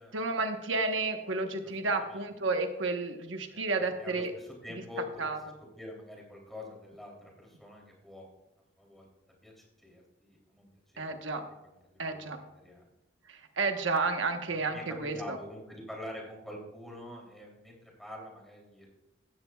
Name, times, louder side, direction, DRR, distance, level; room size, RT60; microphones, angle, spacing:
voice 1, 0.1-4.3 5.2-5.4 11.0-11.4 12.0-12.4 13.3-15.4, right 3 dB, 80° right, 5 dB, 1.1 m, -31 dB
voice 2, 1.6-2.3 3.5-3.6 4.0-5.4 5.7-8.3 8.8-9.1 9.4-10.7 10.9-11.2 11.6-12.9 14.5-18.9, left 1 dB, ahead, -2 dB, 3.1 m, -46 dB
16.5 x 13.0 x 2.3 m, 1.0 s
head